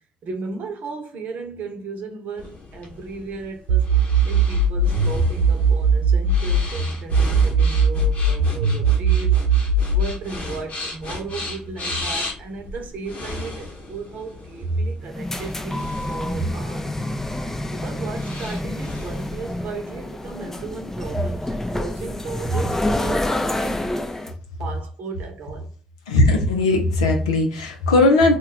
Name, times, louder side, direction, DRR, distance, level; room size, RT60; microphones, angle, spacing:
voice 1, 0.2-3.9 4.2-16.9 17.7-24.0 24.6-25.7, right 3 dB, 60° right, 0.7 m, -33 dB
sound 1, 2.4-19.3, left 3 dB, 45° left, 0.9 m, -36 dB
sound 2, 3.7-6.7 7.1-10.1, right 3 dB, 85° right, 0.3 m, -18 dB
sound 3, 15.0-24.3, left 1 dB, 15° left, 0.4 m, -28 dB
voice 2, 26.1-28.4, left 2 dB, 90° left, 0.4 m, -18 dB
2.3 x 2.2 x 3.9 m
hypercardioid pair, 50°, 3 cm